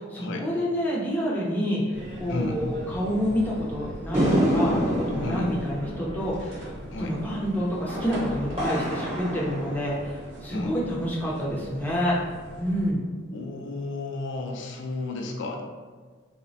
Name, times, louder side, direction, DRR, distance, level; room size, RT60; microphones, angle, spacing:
voice 1, 0.1-6.7 7.0-12.2 12.6-13.0, equal, 10° left, -5 dB, 0.5 m, -28 dB
sound 1, 1.9-12.9, equal, 65° right, 0.6 m, -41 dB
voice 2, 2.3-2.6 5.2-5.5 6.9-7.2 10.5-10.7 13.3-15.6, left 3 dB, 70° left, 2 dB, 0.4 m, -32 dB
sound 2, 4.1-10.6, equal, 30° right, 0.8 m, -28 dB
3.2 x 2.0 x 2.6 m, 1.5 s
head